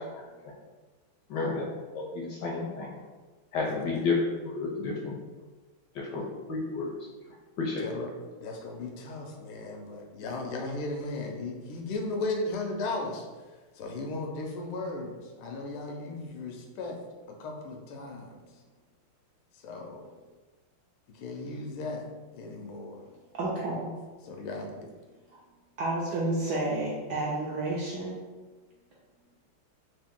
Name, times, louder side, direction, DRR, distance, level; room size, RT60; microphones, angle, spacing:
voice 1, 1.3-1.7 1.9-2.9 3.5-4.1 4.4-5.2 6.0-6.9 7.6-7.8, left 4 dB, 75° left, -2 dB, 1.0 m, -31 dB
voice 2, 3.6-4.0 7.8-13.3 13.7-17.0 17.3-18.4 19.5-20.1 21.1-22.1 22.3-23.0 24.2-24.9, left 2 dB, 90° left, 2 dB, 1.5 m, -36 dB
voice 3, 23.4-23.9 25.8-28.2, right 2 dB, 75° right, -4 dB, 1.0 m, -30 dB
3.6 x 2.6 x 3.6 m, 1.3 s
omnidirectional pair, 2.3 m